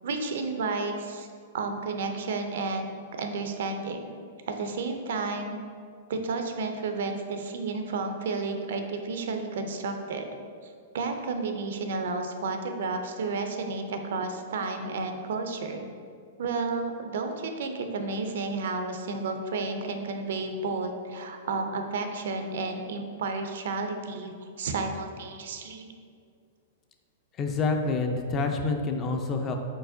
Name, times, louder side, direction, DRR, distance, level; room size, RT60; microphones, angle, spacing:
voice 1, 0.0-1.3 1.5-4.1 4.5-5.6 6.1-10.3 10.6-15.8 16.4-24.3 24.6-25.9, right 3 dB, 75° right, 5 dB, 0.5 m, -32 dB
voice 2, 27.4-29.6, left 3 dB, 25° left, 4 dB, 0.4 m, -27 dB
4.6 x 4.2 x 2.6 m, 2.2 s
hypercardioid pair, 145°, 0 cm